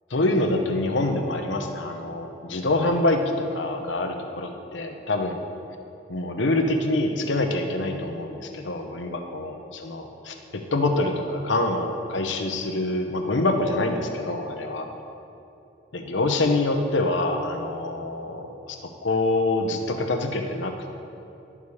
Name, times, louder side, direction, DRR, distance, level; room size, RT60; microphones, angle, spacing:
voice 1, 0.1-5.4 6.1-14.9 15.9-21.0, left 2 dB, 85° left, 4 dB, 0.9 m, -26 dB
11.0 x 4.9 x 7.0 m, 2.8 s
head